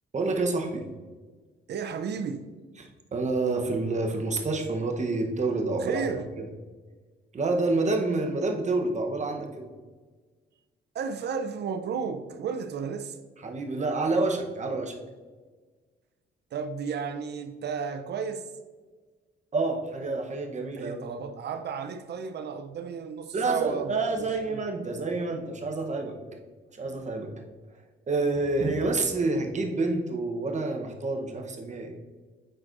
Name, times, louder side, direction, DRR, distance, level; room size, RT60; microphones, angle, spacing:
voice 1, 0.1-0.8 2.8-6.0 6.4-6.5 7.3-9.7 13.4-14.9 19.5-21.2 23.3-26.2 26.8-27.3 28.1-31.9, right 3 dB, 35° right, 3 dB, 1.0 m, -28 dB
voice 2, 1.7-2.5 5.8-6.2 10.9-13.2 16.5-18.5 20.8-24.6, right 6 dB, 60° right, 8 dB, 0.6 m, -33 dB
8.7 x 5.9 x 2.6 m, 1.4 s
cardioid pair, 90°, 20 cm